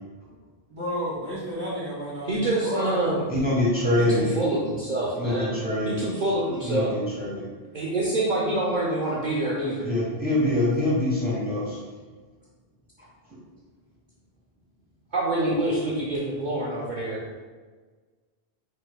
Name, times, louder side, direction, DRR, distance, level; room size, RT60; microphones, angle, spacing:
voice 1, 0.7-3.2, equal, 30° right, -11 dB, 1.7 m, -32 dB
voice 2, 2.2-3.3 4.0-5.5 5.9-6.9 7.7-9.9 15.1-17.2, right 1 dB, 50° right, -5 dB, 0.7 m, -26 dB
voice 3, 3.3-4.3 5.2-6.1 6.6-7.5 9.8-11.8, left 1 dB, 10° right, -7 dB, 1.3 m, -24 dB
4.9 x 4.3 x 2.2 m, 1.4 s
omnidirectional pair, 1.1 m